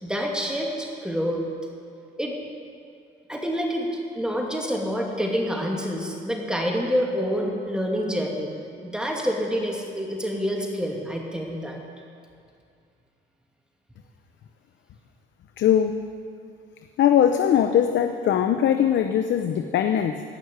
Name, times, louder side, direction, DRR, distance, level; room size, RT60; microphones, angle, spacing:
voice 1, 0.0-1.4 2.2-2.4 3.3-3.9 4.1-8.5 8.8-11.8, equal, 5° right, -1 dB, 2.4 m, -27 dB
voice 2, 15.6-16.0 17.0-20.2, left 9 dB, 70° left, 7 dB, 0.7 m, -21 dB
15.5 x 6.3 x 9.4 m, 2.4 s
cardioid pair, 90°, 20 cm